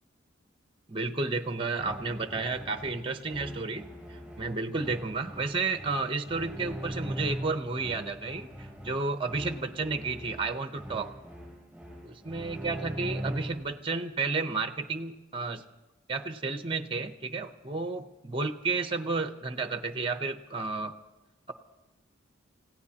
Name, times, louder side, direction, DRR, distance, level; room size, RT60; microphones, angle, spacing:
voice 1, 0.9-11.1 12.0-15.6 16.1-20.9, right 3 dB, 25° right, 8 dB, 0.8 m, -32 dB
sound 1, 1.7-13.8, equal, 5° right, 7.8 m, -41 dB
29.5 x 16.5 x 2.9 m, 1.0 s
head